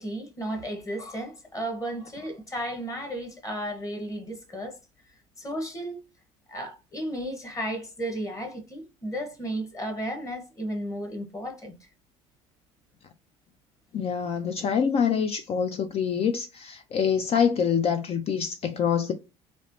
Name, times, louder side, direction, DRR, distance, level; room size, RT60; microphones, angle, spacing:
voice 1, 0.0-4.8 5.4-6.1 6.5-11.9, right 1 dB, 20° left, 1.0 m, -34 dB
voice 2, 13.9-19.1, left 7 dB, 40° left, 0.4 m, -25 dB
3.1 x 2.0 x 2.6 m
supercardioid pair, 75°, 15 cm